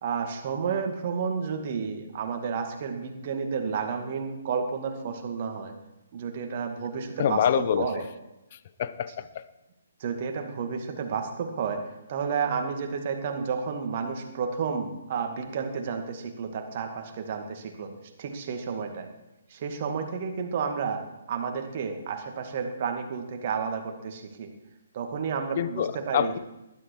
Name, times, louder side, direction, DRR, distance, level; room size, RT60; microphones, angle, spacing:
voice 1, 0.0-5.7 6.1-8.1 10.0-11.8 12.1-17.9 18.2-19.1 19.5-21.0 21.3-24.5 24.9-26.3, right 6 dB, 40° right, 5 dB, 2.2 m, -31 dB
voice 2, 7.2-8.0 8.5-9.4 25.6-26.4, left 9 dB, 40° left, 15 dB, 0.9 m, -27 dB
19.5 x 12.5 x 4.7 m, 0.95 s
figure-of-eight pair, 130°, 0 cm